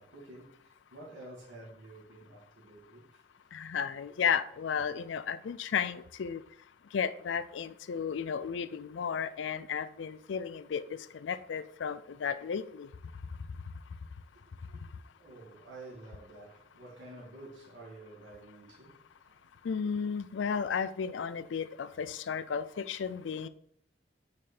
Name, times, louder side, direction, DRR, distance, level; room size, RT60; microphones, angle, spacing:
voice 1, 0.0-3.5 14.5-19.4, right 2 dB, 85° right, 1.9 m, -51 dB
voice 2, 3.5-6.4 6.9-10.8 11.2-12.9 19.7-23.5, left 7 dB, 75° left, 0.4 m, -33 dB
6.1 x 4.3 x 4.3 m
head